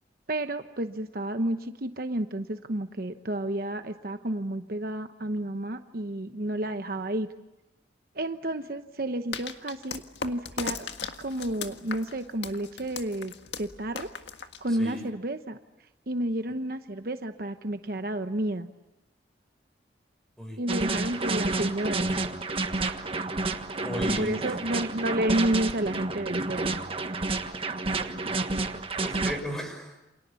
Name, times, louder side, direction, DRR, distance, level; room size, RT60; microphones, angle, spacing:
voice 1, 0.3-7.3 8.1-10.9 11.2-13.3 13.6-14.1 14.6-15.6 16.1-18.7 20.6-22.1 24.2-26.8, right 1 dB, 55° right, 8 dB, 1.0 m, -31 dB
sound 1, 9.3-15.1, left 5 dB, 85° left, 1.7 m, -38 dB
sound 2, 20.7-29.4, right 3 dB, 30° right, 1.5 m, -30 dB
voice 2, 23.8-24.4 29.0-30.0, equal, 5° left, 4 dB, 6.1 m, -34 dB
29.0 x 27.5 x 7.1 m, 0.96 s
head